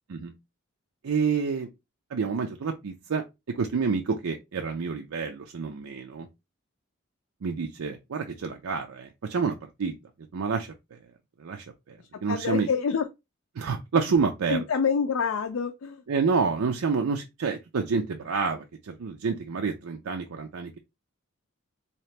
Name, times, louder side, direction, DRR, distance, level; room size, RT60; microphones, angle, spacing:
voice 1, 1.0-1.7 2.1-6.3 7.4-9.9 10.3-11.0 11.4-12.7 13.6-14.6 16.1-20.8, right 5 dB, 85° right, 0.5 m, -28 dB
voice 2, 12.1-13.1 14.5-16.0, left 6 dB, 80° left, 0.4 m, -27 dB
3.8 x 2.9 x 3.2 m
head